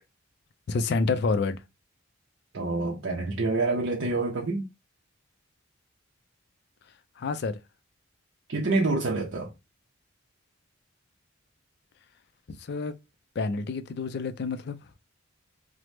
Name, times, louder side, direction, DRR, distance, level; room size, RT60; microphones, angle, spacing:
voice 1, 0.7-1.6 7.2-7.6 12.5-12.9 13.4-14.8, left 4 dB, 50° left, 0.3 m, -28 dB
voice 2, 2.5-4.7 8.5-9.5, right 3 dB, 60° right, 0.5 m, -27 dB
3.0 x 2.0 x 3.1 m
head